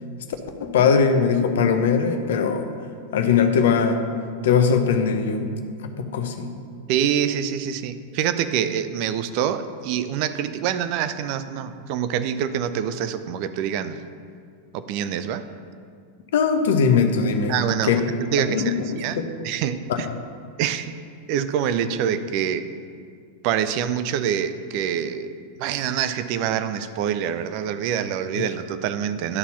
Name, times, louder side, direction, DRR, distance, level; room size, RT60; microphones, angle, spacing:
voice 1, 0.6-2.7 3.1-4.0 4.4-5.5 6.0-6.5 16.3-17.6 17.8-18.0 18.4-19.3 19.9-20.1 28.4-28.5, left 6 dB, 60° left, 6 dB, 0.8 m, -20 dB
voice 2, 6.9-14.0 14.7-15.4 17.5-20.1 20.6-20.9 21.3-22.7 23.4-29.4, right 9 dB, 45° right, 11 dB, 0.5 m, -26 dB
11.0 x 4.2 x 5.8 m, 2.2 s
figure-of-eight pair, 90°, 0 cm